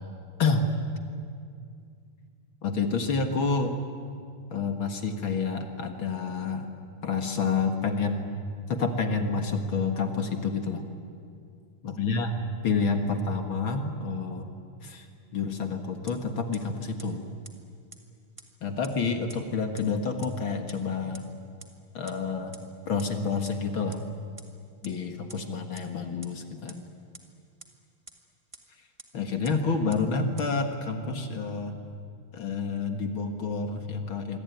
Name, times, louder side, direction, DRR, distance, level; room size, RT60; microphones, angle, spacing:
voice 1, 0.4-0.7 2.6-3.8 4.5-6.7 7.0-8.3 8.7-10.8 11.8-14.5 14.8-15.0 15.3-17.2 18.6-21.3 21.9-22.6 22.9-24.0 24.8-26.8 29.1-31.8 32.3-34.4, left 4 dB, 50° left, 6 dB, 1.6 m, -29 dB
sound 1, 16.1-16.2 16.5-16.6 17.0-17.1 17.4-17.5 17.9-18.0 18.4-18.5 18.8-18.9 19.3-19.4 19.8-19.9 20.2-20.3 20.7-20.8 21.1-21.2 21.6-21.7 22.1-22.2 22.5-22.6 23.0-23.1 23.4-23.5 23.9-24.0 24.4-24.5 24.8-24.9 25.3-25.4 25.7-25.8 26.2-26.3 26.7-26.8 27.1-27.2 27.6-27.7 28.1-28.2 28.5-28.6 29.0-29.1 29.4-29.5 29.9-30.0 30.4-30.5, right 2 dB, 25° right, 0.6 m, -45 dB
26.5 x 23.5 x 9.4 m, 2.3 s
omnidirectional pair, 4.4 m